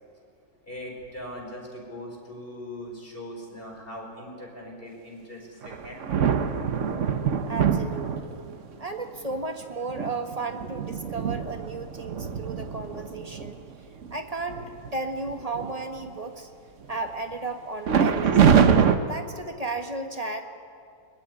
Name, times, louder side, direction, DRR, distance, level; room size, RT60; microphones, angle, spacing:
voice 1, 0.6-6.2 10.6-10.7, left 1 dB, 35° left, 0 dB, 5.4 m, -40 dB
sound 1, 5.6-8.6 9.3-9.4 9.9-13.5 14.0-14.2 14.5-14.9 15.3-16.1 17.9-19.0, right 7 dB, 55° right, 1.2 m, -24 dB
voice 2, 7.5-8.4 8.8-13.6 14.1-14.6 14.9-16.5 16.9-18.4 19.1-20.5, right 3 dB, 25° right, 5 dB, 1.4 m, -34 dB
21.5 x 21.0 x 9.8 m, 2.3 s
omnidirectional pair, 1.7 m